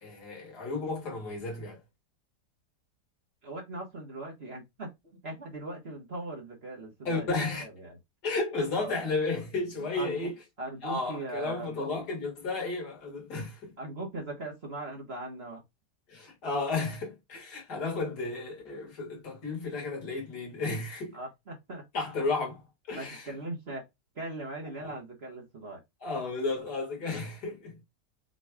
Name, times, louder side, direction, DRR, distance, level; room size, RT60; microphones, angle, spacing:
voice 1, 0.0-1.8 7.0-7.6 8.2-10.3 10.8-13.7 16.1-21.2 21.9-23.3 24.8-24.9 26.0-27.8, left 3 dB, 65° left, 2.8 m, -33 dB
voice 2, 3.4-7.3 7.6-8.0 8.7-8.9 9.8-10.2 10.6-11.9 13.8-15.6 21.1-21.8 22.9-23.8 24.1-25.8, right 2 dB, 40° right, 1.4 m, -40 dB
6.4 x 3.2 x 2.3 m
omnidirectional pair, 1.9 m